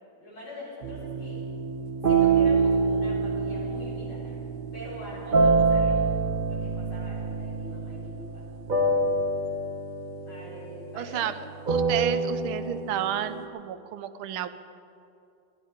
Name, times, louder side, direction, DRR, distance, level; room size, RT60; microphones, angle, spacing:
voice 1, 0.2-1.4 2.0-4.4 4.7-6.1 6.5-8.4 8.9-9.1 10.2-11.3, left 1 dB, 75° left, -9 dB, 5.7 m, -43 dB
sound 1, 0.8-13.4, right 4 dB, 35° right, 0.9 m, -26 dB
voice 2, 10.9-11.4 11.7-14.5, right 11 dB, 90° right, 12 dB, 1.5 m, -31 dB
19.5 x 12.5 x 5.0 m, 2.6 s
omnidirectional pair, 2.2 m